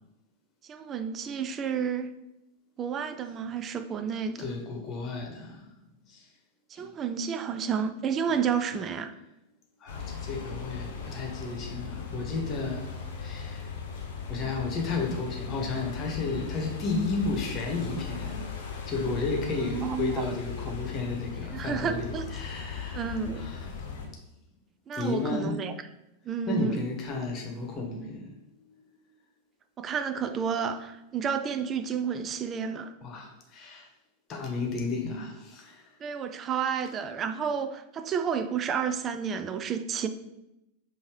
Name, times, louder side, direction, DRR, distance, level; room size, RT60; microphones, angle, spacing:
voice 1, 0.6-2.1 2.8-4.5 6.7-9.1 19.6-20.1 21.5-22.2 22.9-23.4 24.9-25.7 26.2-26.8 29.8-32.9 36.0-40.1, right 7 dB, 30° right, 9 dB, 0.3 m, -31 dB
voice 2, 4.4-5.8 6.1-6.3 6.7-6.9 9.8-13.7 14.3-23.8 24.9-25.6 26.5-28.9 33.0-33.9 34.3-35.8, left 3 dB, 35° left, 1 dB, 1.1 m, -33 dB
sound 1, 9.9-24.1, left 6 dB, 60° left, 0.8 m, -38 dB
5.5 x 2.7 x 3.2 m, 0.90 s
figure-of-eight pair, 90°, 0 cm